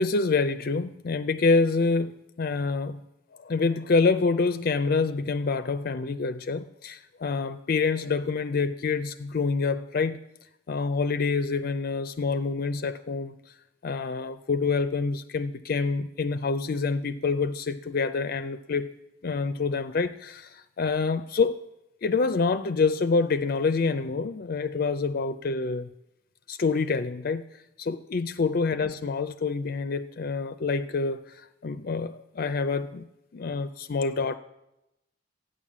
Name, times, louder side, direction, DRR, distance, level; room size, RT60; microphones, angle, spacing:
voice 1, 0.0-3.0 3.4-10.2 10.7-13.4 13.8-18.9 19.2-21.6 22.0-25.9 26.5-27.5 27.8-33.1 33.3-34.4, left 4 dB, 50° left, 11 dB, 0.4 m, -27 dB
13.5 x 9.3 x 7.3 m, 0.90 s
head